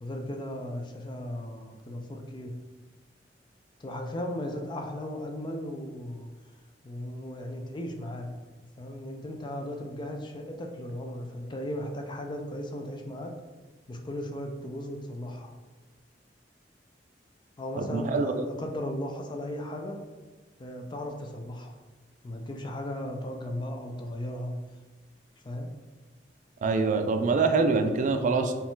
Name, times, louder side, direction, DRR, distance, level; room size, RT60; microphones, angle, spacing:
voice 1, 0.0-2.6 3.8-6.3 6.8-8.4 8.8-13.4 13.9-15.6 17.6-20.0 20.6-21.8 22.2-24.6 25.4-25.7, left 1 dB, 25° left, 3 dB, 0.4 m, -36 dB
voice 2, 17.8-18.4 26.6-28.5, right 4 dB, 45° right, 6 dB, 0.3 m, -25 dB
4.1 x 2.3 x 3.8 m, 1.3 s
head